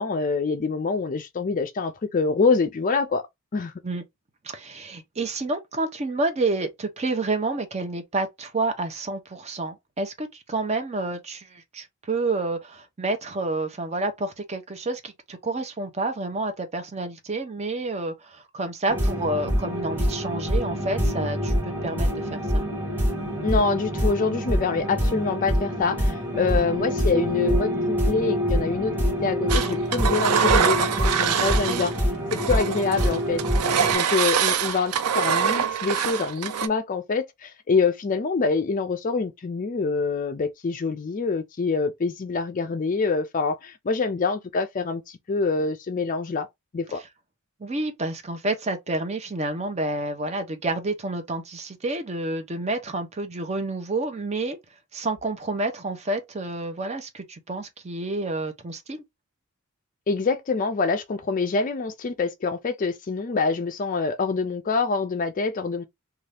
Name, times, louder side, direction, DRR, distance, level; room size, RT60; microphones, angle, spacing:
voice 1, 0.0-3.3 3.5-3.7 23.4-31.9 32.3-33.4 33.9-46.5 46.7-47.0 60.1-65.8, left 4 dB, 35° left, 0.4 m, -25 dB
voice 2, 4.4-22.6 26.5-26.6 31.7-31.8 47.6-54.6 54.9-59.0, right 2 dB, 30° right, 0.6 m, -29 dB
sound 1, 18.9-33.9, equal, 10° right, 1.1 m, -25 dB
Engine, 29.5-32.0 32.3-36.7, right 8 dB, 90° right, 0.4 m, -24 dB
2.7 x 2.3 x 3.3 m
head